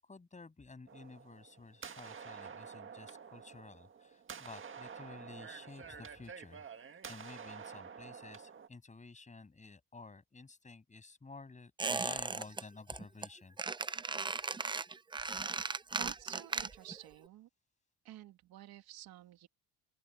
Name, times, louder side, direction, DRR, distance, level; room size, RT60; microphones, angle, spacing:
voice 1, 0.0-6.6 7.1-13.6, left 3 dB, 20° left, 7.3 m, -52 dB
sound 1, 0.9-8.7, right 6 dB, 35° right, 1.7 m, -49 dB
Squeak, 11.8-12.6 12.9-13.3 13.6-17.0 17.2-17.3, right 4 dB, 15° right, 0.5 m, -37 dB
voice 2, 15.9-17.5 18.0-19.5, right 14 dB, 80° right, 2.9 m, -51 dB
open air
cardioid pair, 125°, 37 cm